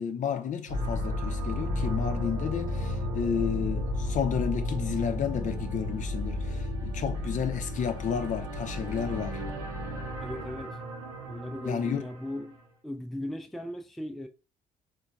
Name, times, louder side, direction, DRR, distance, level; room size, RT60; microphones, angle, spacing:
voice 1, 0.0-9.4 11.6-12.0, left 7 dB, 50° left, 0.6 m, -32 dB
sound 1, 0.7-12.6, left 1 dB, 80° right, 0.7 m, -33 dB
voice 2, 10.2-10.8 11.3-12.6 12.8-14.3, left 1 dB, ahead, 0.4 m, -37 dB
3.8 x 2.2 x 2.3 m
hypercardioid pair, 50°, 17 cm